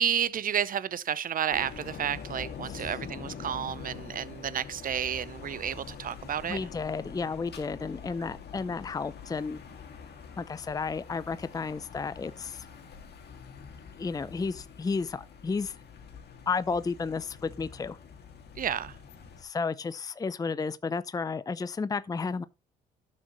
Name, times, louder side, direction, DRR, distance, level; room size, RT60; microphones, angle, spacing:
voice 1, 0.0-6.6 18.6-19.0, right 9 dB, 45° right, 0.7 m, -31 dB
sound 1, 1.5-19.4, left 6 dB, 55° left, 2.0 m, -45 dB
voice 2, 6.4-9.6 10.4-12.7 14.0-15.8 16.5-18.0 19.4-22.4, left 4 dB, 20° left, 0.5 m, -32 dB
12.0 x 6.5 x 3.0 m
supercardioid pair, 65°, 20 cm